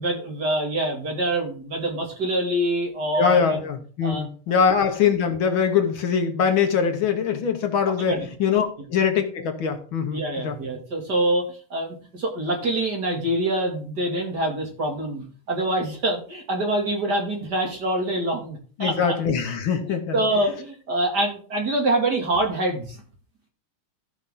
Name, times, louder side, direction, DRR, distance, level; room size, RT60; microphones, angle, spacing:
voice 1, 0.0-3.6 4.0-4.2 7.9-8.3 10.1-11.4 11.7-19.1 19.8-23.0, right 1 dB, 50° right, 0 dB, 2.9 m, -25 dB
voice 2, 3.2-10.6 18.8-20.2, left 7 dB, 70° left, 6 dB, 2.0 m, -23 dB
14.5 x 5.4 x 3.7 m, 0.41 s
omnidirectional pair, 2.3 m